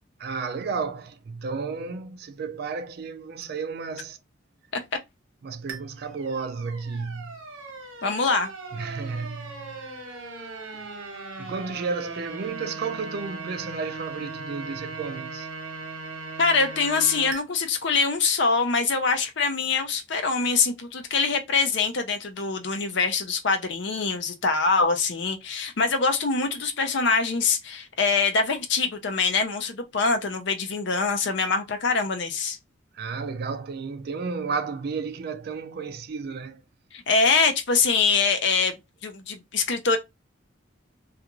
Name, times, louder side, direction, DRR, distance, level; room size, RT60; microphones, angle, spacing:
voice 1, 0.2-4.2 5.4-7.4 8.7-9.9 11.4-15.5 32.9-36.6, right 4 dB, 50° right, 0.4 m, -32 dB
sound 1, 5.7-17.4, right 3 dB, 80° right, 1.0 m, -38 dB
voice 2, 8.0-8.5 16.4-32.6 36.9-38.7 39.0-40.0, left 4 dB, 60° left, 0.6 m, -24 dB
2.4 x 2.4 x 2.9 m
head